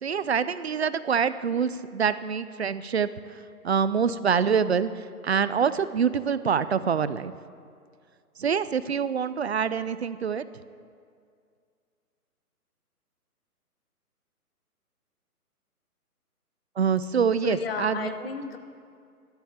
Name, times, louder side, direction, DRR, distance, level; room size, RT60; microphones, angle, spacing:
voice 1, 0.0-7.4 8.4-10.4 16.8-18.1, right 6 dB, 45° right, 15 dB, 0.5 m, -26 dB
voice 2, 17.4-18.6, left 6 dB, 40° left, 8 dB, 1.1 m, -33 dB
13.0 x 12.5 x 7.2 m, 2.3 s
hypercardioid pair, 155°, 46 cm